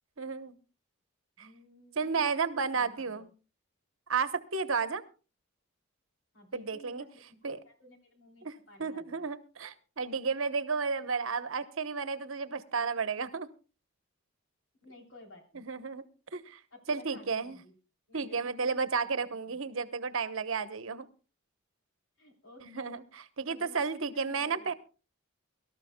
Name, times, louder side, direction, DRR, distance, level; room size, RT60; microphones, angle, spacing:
voice 1, 0.2-0.6 1.4-1.5 2.0-3.3 4.1-5.0 6.5-7.0 7.4-7.6 8.4-8.5 8.8-13.5 15.5-16.0 16.3-16.6 16.9-17.6 18.1-21.1 22.6-23.0 23.4-24.7, right 5 dB, 75° right, 12 dB, 1.0 m, -32 dB
voice 2, 1.4-3.3 6.3-9.3 14.8-15.7 16.7-17.7 18.1-18.8 19.3-19.6 22.2-22.9 23.5-24.7, left 1 dB, 65° left, 2 dB, 3.4 m, -54 dB
23.5 x 13.0 x 2.2 m, 0.34 s
head